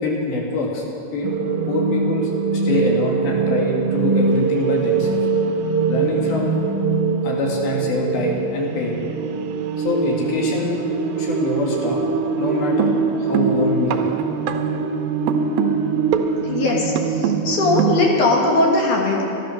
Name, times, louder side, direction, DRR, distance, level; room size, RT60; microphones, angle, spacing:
voice 1, 0.0-0.8 1.1-1.3 1.7-5.3 5.9-6.6 7.2-9.0 9.8-10.8 11.2-12.0 12.4-14.1, left 2 dB, 85° left, -2 dB, 3.9 m, -24 dB
sound 1, 1.2-18.1, right 5 dB, 85° right, 2.6 m, -22 dB
voice 2, 16.5-16.9 17.2-19.3, left 2 dB, 60° left, -1 dB, 3.0 m, -19 dB
13.0 x 12.0 x 6.4 m, 2.9 s
omnidirectional pair, 4.2 m